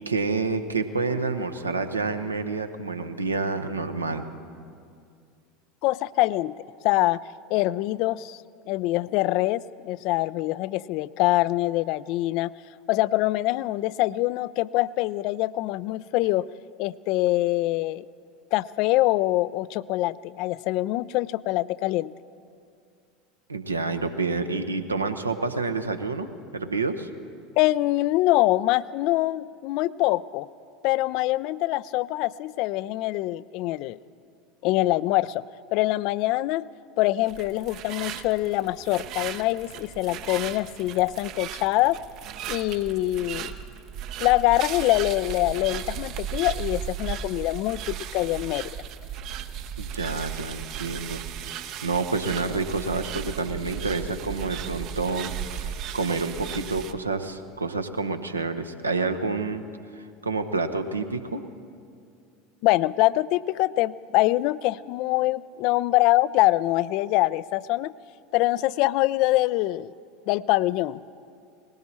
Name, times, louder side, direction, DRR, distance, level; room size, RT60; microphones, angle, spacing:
voice 1, 0.1-4.3 23.5-27.1 49.8-59.6 60.0-61.4, right 3 dB, 80° right, 8 dB, 0.8 m, -28 dB
voice 2, 5.8-6.5 6.8-7.2 7.5-8.4 8.7-12.5 12.9-16.5 16.8-18.0 18.5-22.1 27.6-30.5 30.8-34.0 34.6-35.4 35.7-36.7 37.0-42.0 42.5-43.5 44.2-48.7 62.6-67.9 68.3-69.9 70.3-71.0, left 17 dB, 50° left, 19 dB, 0.3 m, -24 dB
sound 1, 37.3-56.9, right 9 dB, 45° right, 0.7 m, -36 dB
19.5 x 17.5 x 4.2 m, 2.4 s
figure-of-eight pair, 75°, 0 cm